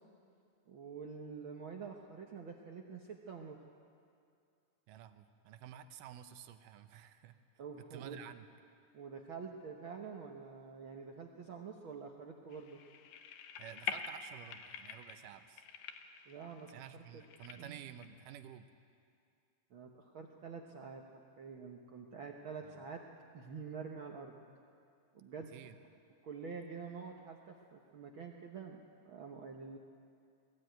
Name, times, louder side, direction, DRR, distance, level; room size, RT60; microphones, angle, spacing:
voice 1, 0.7-3.6 7.6-8.2 8.9-12.8 16.3-17.2 17.6-17.8 19.7-21.0 21.4-23.0 23.3-24.6 25.1-25.6 26.2-29.8, right 5 dB, 65° right, 1 dB, 1.3 m, -47 dB
voice 2, 4.9-7.4 7.9-8.5 13.6-15.6 16.7-18.7 22.6-22.8 25.5-25.8, right 10 dB, 90° right, 9 dB, 2.5 m, -51 dB
sound 1, 12.5-18.1, left 7 dB, 90° left, 2.6 m, -46 dB
20.5 x 14.5 x 9.1 m, 2.4 s
omnidirectional pair, 3.7 m